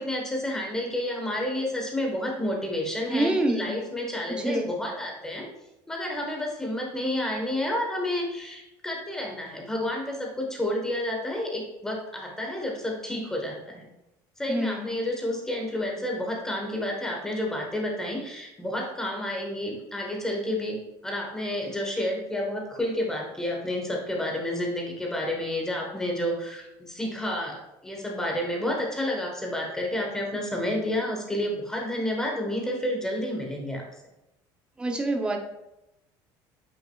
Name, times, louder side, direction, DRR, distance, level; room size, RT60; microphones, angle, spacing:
voice 1, 0.0-5.5 5.9-13.9 14.4-20.8 21.0-33.8, left 1 dB, 5° left, 0 dB, 1.1 m, -30 dB
voice 2, 3.1-3.7 4.3-4.7 14.5-14.9 34.8-35.4, right 1 dB, 10° right, 4 dB, 0.6 m, -26 dB
8.2 x 6.2 x 2.3 m, 0.90 s
cardioid pair, 175°, 9 cm